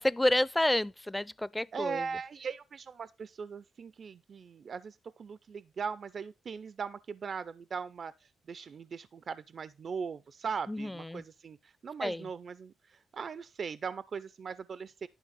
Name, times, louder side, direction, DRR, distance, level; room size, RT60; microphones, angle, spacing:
voice 1, 0.0-2.1 10.7-11.2 12.0-12.3, left 1 dB, 10° left, 0.4 m, -29 dB
voice 2, 1.7-15.1, right 6 dB, 55° right, 0.4 m, -39 dB
11.0 x 4.6 x 4.9 m
cardioid pair, 70°, 0 cm